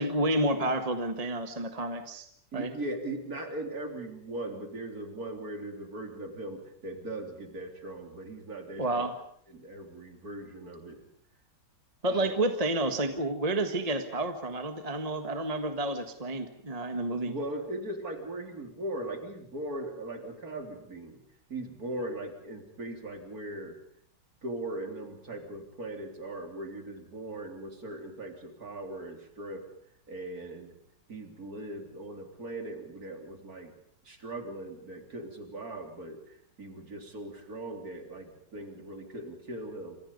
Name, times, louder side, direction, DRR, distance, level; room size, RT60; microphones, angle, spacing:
voice 1, 0.0-2.3 2.5-2.7 8.8-9.1 12.0-17.3, right 1 dB, 20° right, 7 dB, 1.6 m, -30 dB
voice 2, 2.5-9.1 9.5-11.0 12.1-12.4 17.3-21.2 21.5-23.8 24.4-29.7 30.1-30.8 31.1-33.7 34.0-40.0, right 1 dB, 55° right, 4 dB, 4.0 m, -39 dB
28.5 x 25.5 x 5.4 m, 0.63 s
omnidirectional pair, 1.9 m